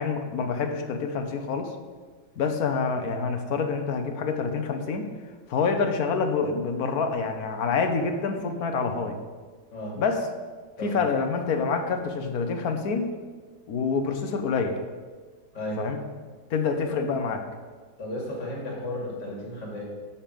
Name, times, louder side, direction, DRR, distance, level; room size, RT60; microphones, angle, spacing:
voice 1, 0.0-1.7 2.4-5.1 5.5-9.2 10.0-10.3 10.8-13.2 13.7-14.8 15.8-16.0 16.5-17.4, left 5 dB, 60° left, 6 dB, 1.4 m, -27 dB
voice 2, 18.0-19.9, left 1 dB, 85° left, -2 dB, 3.3 m, -34 dB
8.9 x 5.3 x 7.6 m, 1.4 s
omnidirectional pair, 1.9 m